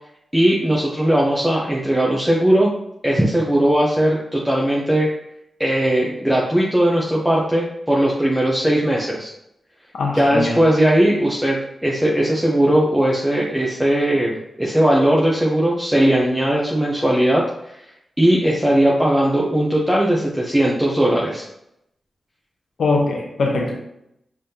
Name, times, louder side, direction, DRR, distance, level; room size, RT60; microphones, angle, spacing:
voice 1, 0.3-2.7 3.0-5.1 5.6-9.3 10.1-17.8 18.2-21.4, right 1 dB, 5° right, -4 dB, 0.8 m, -18 dB
voice 2, 9.9-10.6 22.8-23.8, left 3 dB, 80° left, 0 dB, 0.9 m, -21 dB
5.2 x 3.5 x 2.8 m, 0.80 s
cardioid pair, 65°, 0 cm